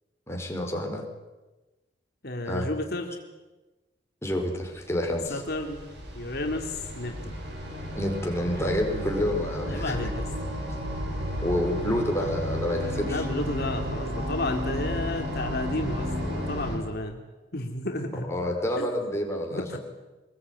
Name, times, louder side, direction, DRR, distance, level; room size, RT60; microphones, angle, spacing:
voice 1, 0.3-1.1 2.5-2.8 4.2-5.4 8.0-10.1 11.4-13.2 18.3-19.8, left 1 dB, 15° left, 1 dB, 4.7 m, -28 dB
voice 2, 2.2-3.2 5.3-5.8 6.1-7.3 9.6-10.2 13.0-17.2 17.5-18.3 18.8-19.1 19.5-19.8, left 2 dB, 55° left, 3 dB, 2.7 m, -32 dB
sound 1, 4.8-16.8, equal, 65° right, 7.8 m, -33 dB
24.0 x 21.0 x 9.6 m, 1.1 s
head